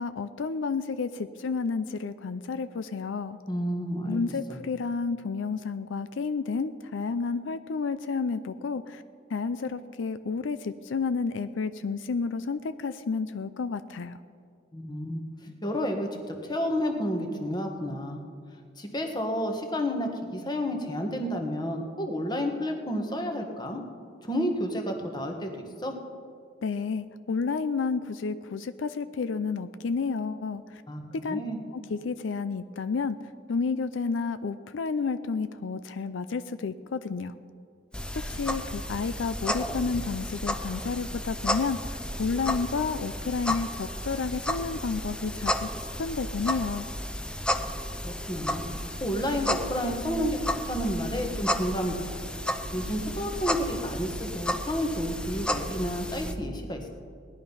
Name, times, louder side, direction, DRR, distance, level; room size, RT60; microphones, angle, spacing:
voice 1, 0.0-3.4 4.1-9.0 9.3-14.2 26.6-30.8 31.1-31.4 31.7-33.2 33.5-37.3 38.3-46.9, left 4 dB, 80° left, 12 dB, 0.5 m, -31 dB
voice 2, 3.5-4.2 14.7-18.2 18.8-23.8 24.2-25.9 30.9-31.6 47.6-47.7 48.0-50.4 50.6-51.9 52.7-56.9, equal, 25° left, 3 dB, 1.5 m, -31 dB
sound 1, 37.9-56.3, left 1 dB, 5° left, 0.6 m, -33 dB
18.0 x 11.0 x 5.6 m, 2.2 s
head